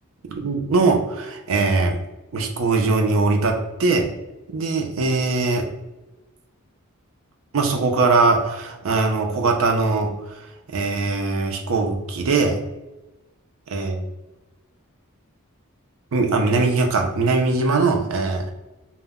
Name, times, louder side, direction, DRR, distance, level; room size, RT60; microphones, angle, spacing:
voice 1, 0.3-2.0 2.3-4.1 4.5-5.7 7.5-10.2 10.7-12.6 13.7-14.0 16.1-18.5, right 3 dB, 65° right, 3 dB, 0.4 m, -21 dB
2.0 x 2.0 x 3.4 m, 1.0 s
head